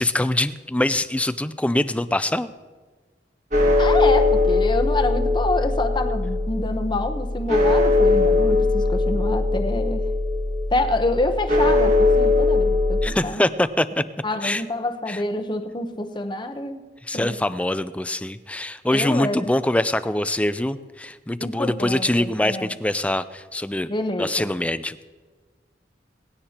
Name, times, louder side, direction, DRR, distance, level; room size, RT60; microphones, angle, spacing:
voice 1, 0.0-2.5 13.0-14.0 14.4-14.6 15.1-15.2 17.0-23.9 24.2-25.1, left 1 dB, 10° left, 13 dB, 0.4 m, -24 dB
sound 1, 3.5-13.1, left 2 dB, 45° right, 1.8 m, -20 dB
voice 2, 3.8-10.0 10.7-13.5 14.2-16.8 17.1-17.3 18.9-19.6 21.4-22.7 23.9-24.5, left 2 dB, 25° left, 6 dB, 0.9 m, -27 dB
19.0 x 16.5 x 2.9 m, 1.4 s
head